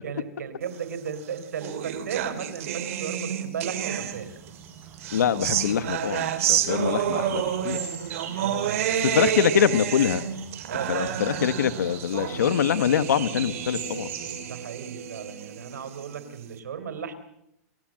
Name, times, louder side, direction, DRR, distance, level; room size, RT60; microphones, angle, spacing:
voice 1, 0.0-4.4 8.4-9.4 10.7-11.2 14.4-17.1, right 7 dB, 90° right, 10 dB, 3.9 m, -35 dB
sound 1, 1.1-4.5 5.0-16.4, right 10 dB, 55° right, 2.7 m, -30 dB
sound 2, 4.0-14.4, right 7 dB, 20° right, 5.6 m, -42 dB
voice 2, 5.1-7.8 9.0-10.2 10.9-14.1, left 8 dB, 85° left, 12 dB, 1.3 m, -24 dB
29.0 x 14.5 x 7.6 m, 0.82 s
hypercardioid pair, 155°, 9 cm